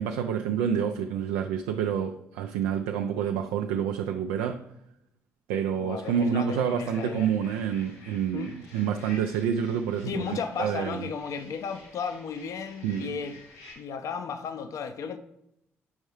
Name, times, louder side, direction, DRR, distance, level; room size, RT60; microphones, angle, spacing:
voice 1, 0.0-4.7 5.5-11.1 12.8-13.1, right 8 dB, 70° right, 0.4 m, -28 dB
voice 2, 5.7-7.3 8.3-8.5 10.1-13.4 13.8-15.2, left 6 dB, 55° left, 0.6 m, -34 dB
sound 1, 6.0-13.7, left 2 dB, 75° left, 2.2 m, -51 dB
7.1 x 5.4 x 3.1 m
figure-of-eight pair, 45°, 7 cm